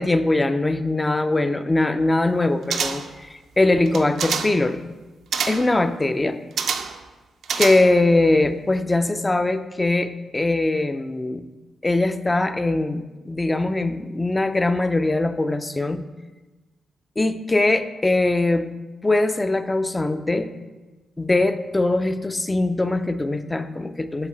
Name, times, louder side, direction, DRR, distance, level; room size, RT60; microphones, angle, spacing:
voice 1, 0.0-4.8 5.5-6.4 7.6-11.4 11.8-16.0 17.2-18.7 19.0-20.5 21.2-24.3, left 2 dB, 20° left, 10 dB, 0.3 m, -21 dB
sound 1, 2.7-3.2 3.9-4.6 5.3-5.7 6.6-7.0 7.4-8.1 8.4-8.5, right 6 dB, 80° right, 0.4 m, -27 dB
7.2 x 3.6 x 3.8 m, 1.2 s
cardioid pair, 105°, 0 cm